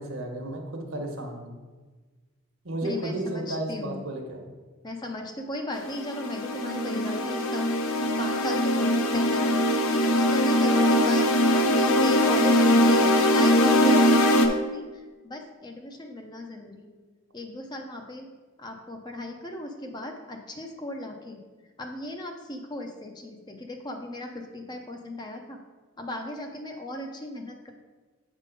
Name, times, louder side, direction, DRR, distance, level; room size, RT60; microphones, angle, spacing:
voice 1, 0.0-1.5 2.6-4.4, right 1 dB, 75° right, 2 dB, 1.2 m, -33 dB
voice 2, 2.8-4.0 4.8-7.7 8.0-9.6 9.9-16.9 17.3-18.3 18.6-21.4 21.8-25.6 26.0-27.7, left 1 dB, 20° left, 3 dB, 0.5 m, -36 dB
sound 1, 5.7-14.5, equal, 75° left, 0.6 m, -21 dB
7.5 x 3.7 x 5.2 m, 1.4 s
head